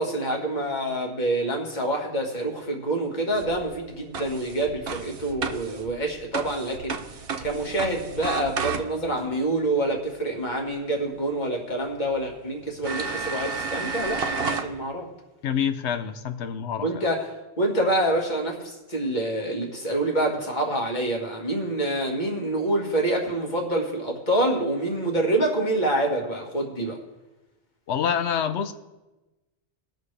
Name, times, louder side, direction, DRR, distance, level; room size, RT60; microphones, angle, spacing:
voice 1, 0.0-7.0 7.4-15.1 16.8-27.0, right 1 dB, 45° left, 1 dB, 1.8 m, -26 dB
sound 1, 3.3-9.2 11.4-11.5 12.1-12.2 12.8-14.7, right 5 dB, 65° right, 1.0 m, -32 dB
voice 2, 15.4-17.0 27.9-28.7, left 8 dB, 85° left, 8 dB, 1.0 m, -27 dB
19.5 x 6.6 x 3.3 m, 1.1 s
omnidirectional pair, 1.1 m